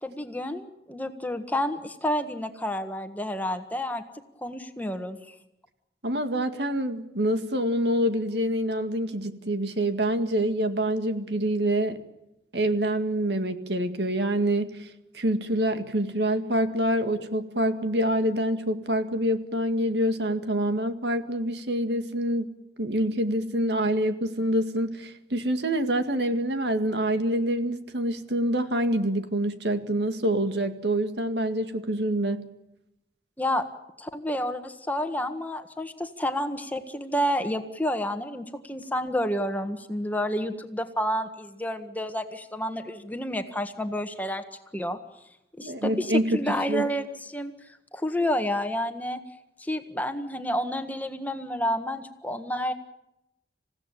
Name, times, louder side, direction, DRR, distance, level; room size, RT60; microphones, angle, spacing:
voice 1, 0.0-4.0 4.4-5.3 33.4-33.6 34.0-44.4 44.7-45.0 45.6-49.2 49.6-52.7, equal, 10° left, 7 dB, 1.5 m, -30 dB
voice 2, 6.0-12.0 12.5-22.5 22.8-32.4 45.6-46.9, right 1 dB, 75° right, 8 dB, 2.0 m, -26 dB
28.0 x 16.5 x 9.1 m, 0.87 s
head